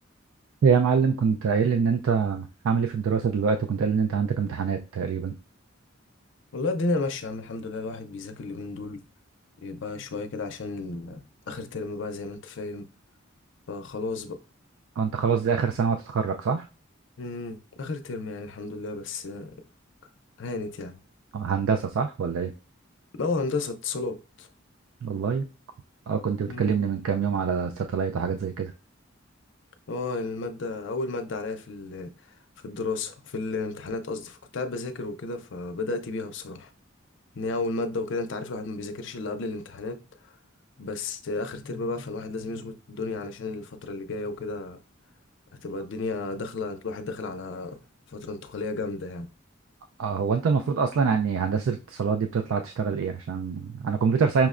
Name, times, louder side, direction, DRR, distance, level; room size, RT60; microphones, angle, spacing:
voice 1, 0.6-5.3 15.0-16.6 21.3-22.5 25.0-25.4 26.1-28.7 50.0-54.5, right 6 dB, 85° right, 0.3 m, -25 dB
voice 2, 6.5-9.0 9.6-12.9 13.7-14.4 17.2-19.6 20.4-21.0 23.2-24.5 26.5-26.8 29.9-32.1 32.6-36.7 37.4-40.0 40.8-44.8 45.6-47.8 48.1-49.3, left 3 dB, 65° left, 0.5 m, -32 dB
5.7 x 2.1 x 2.4 m
head